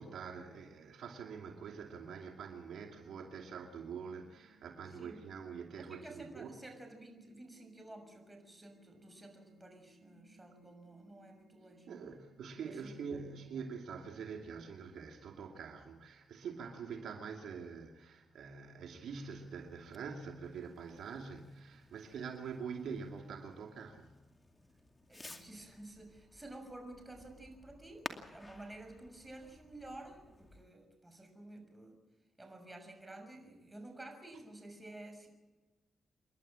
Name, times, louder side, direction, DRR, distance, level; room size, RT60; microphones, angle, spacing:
voice 1, 0.0-6.6 11.9-24.1, right 6 dB, 80° right, 2 dB, 2.6 m, -45 dB
sound 1, 1.4-15.0, right 2 dB, 60° right, 2.6 m, -67 dB
voice 2, 5.8-11.9 12.6-13.6 25.1-32.0 32.4-35.3, right 1 dB, 15° right, 5 dB, 6.4 m, -52 dB
Fireworks, 19.2-30.6, left 2 dB, 20° left, 2.4 m, -54 dB
28.5 x 11.5 x 8.9 m, 1.2 s
cardioid pair, 80°, 0 cm